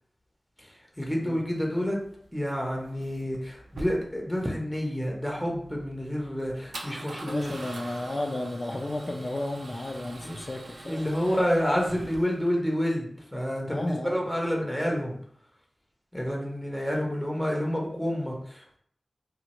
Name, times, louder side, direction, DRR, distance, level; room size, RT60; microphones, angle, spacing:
voice 1, 0.6-2.0 2.3-7.5 10.2-10.4 10.9-15.1 16.1-18.8, equal, 5° left, -1 dB, 0.7 m, -29 dB
Male speech man speaking / Car / Engine starting, 1.4-12.5, right 2 dB, 90° right, 0.4 m, -45 dB
voice 2, 7.3-11.1 13.7-14.2, left 1 dB, 45° left, 3 dB, 0.4 m, -33 dB
3.0 x 2.4 x 2.9 m, 0.64 s
wide cardioid pair, 60°, 0 cm